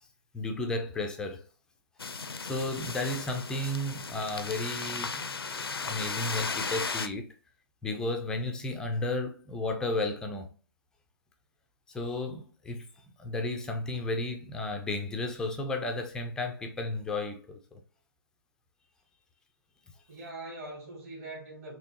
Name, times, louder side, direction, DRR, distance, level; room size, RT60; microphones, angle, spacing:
voice 1, 0.3-1.4 2.4-5.2 5.5-7.3 7.8-10.5 11.9-12.9 13.2-17.8, left 2 dB, 5° left, 0.3 m, -33 dB
sound 1, 2.0-7.1, left 4 dB, 75° left, 0.4 m, -35 dB
voice 2, 20.1-21.8, right 2 dB, 40° right, 1.7 m, -43 dB
4.3 x 2.9 x 2.7 m
figure-of-eight pair, 125°, 13 cm